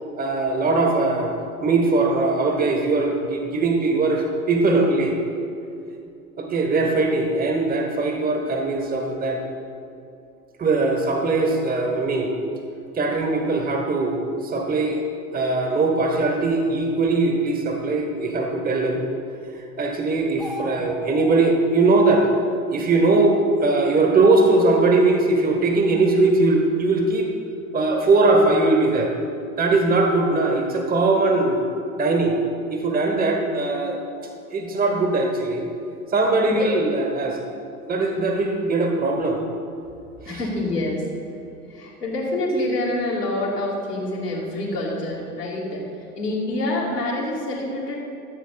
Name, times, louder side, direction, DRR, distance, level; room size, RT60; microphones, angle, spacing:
voice 1, 0.2-1.3 1.6-5.2 6.4-9.4 10.6-12.3 12.9-14.2 14.4-15.0 15.3-19.0 19.8-22.3 22.7-27.3 27.7-29.1 29.6-31.6 32.0-32.4 32.7-34.0 34.5-35.7 36.1-37.4 37.9-39.4 40.3-40.4, right 3 dB, 20° right, 2 dB, 1.4 m, -20 dB
sound 1, 20.3-21.5, equal, ahead, 0.4 m, -35 dB
voice 2, 40.2-41.1 41.4-48.0, left 1 dB, 85° left, -4 dB, 2.8 m, -27 dB
14.5 x 8.1 x 4.0 m, 2.6 s
figure-of-eight pair, 85°, 46 cm